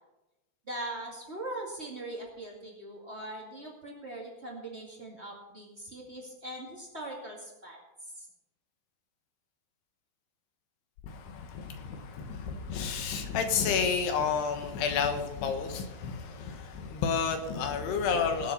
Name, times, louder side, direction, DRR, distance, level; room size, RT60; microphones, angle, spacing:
voice 1, 0.7-7.8 8.1-8.2, right 1 dB, 25° right, -2 dB, 1.4 m, -41 dB
voice 2, 11.1-18.5, left 6 dB, 85° left, 6 dB, 3.4 m, -31 dB
19.0 x 7.0 x 5.5 m, 0.97 s
omnidirectional pair, 4.6 m